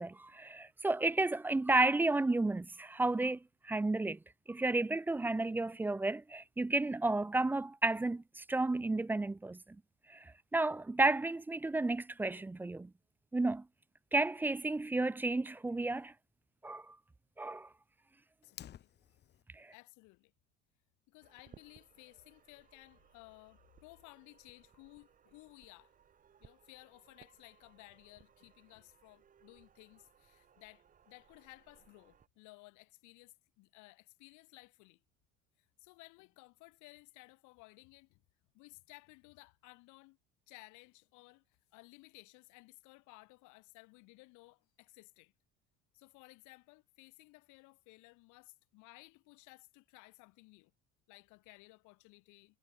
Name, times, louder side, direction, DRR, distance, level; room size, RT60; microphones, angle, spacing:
voice 1, 0.0-4.2 4.5-9.6 10.1-12.9 13.3-13.7 14.1-16.1 16.6-17.0 17.4-17.7 19.5-19.7, right 2 dB, 5° right, 0.4 m, -32 dB
voice 2, 18.4-18.9 19.7-20.3 21.1-25.9 26.4-35.0 35.6-38.2 38.5-40.2 40.5-45.3 45.9-50.7 51.1-52.6, left 25 dB, 75° left, 4.8 m, -58 dB
Fire, 18.4-19.4, left 10 dB, 35° left, 1.9 m, -52 dB
sound 1, 21.2-32.3, right 8 dB, 25° right, 2.7 m, -65 dB
cardioid pair, 160°, 30 cm